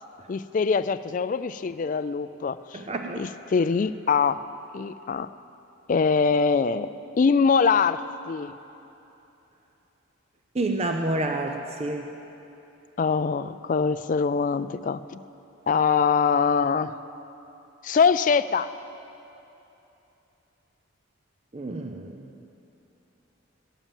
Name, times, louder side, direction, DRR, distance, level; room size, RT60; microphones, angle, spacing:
voice 1, 0.3-2.8 3.2-4.4 4.7-5.3 5.9-8.0 8.3-8.5 13.0-15.2 15.7-16.9 17.8-18.7, left 5 dB, 40° left, 14 dB, 0.3 m, -23 dB
voice 2, 2.7-3.2 10.5-12.0 21.5-22.3, right 2 dB, 30° right, 4 dB, 0.5 m, -29 dB
18.0 x 7.3 x 7.2 m, 2.9 s
head